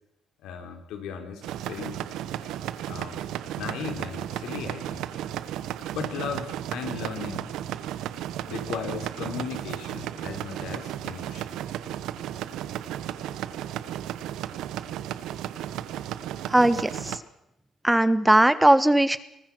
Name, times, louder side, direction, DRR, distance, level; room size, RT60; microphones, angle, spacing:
voice 1, 0.4-1.4 1.7-2.0 2.9-3.2 3.6-5.1 5.9-7.5 8.5-11.5, left 7 dB, 90° left, 6 dB, 3.7 m, -36 dB
sound 1, 1.4-17.2, right 11 dB, 90° right, 1.0 m, -34 dB
voice 2, 16.5-17.2 17.8-19.2, right 1 dB, 10° right, 14 dB, 1.3 m, -19 dB
24.5 x 19.5 x 6.2 m, 0.87 s
cardioid pair, 90°, 0 cm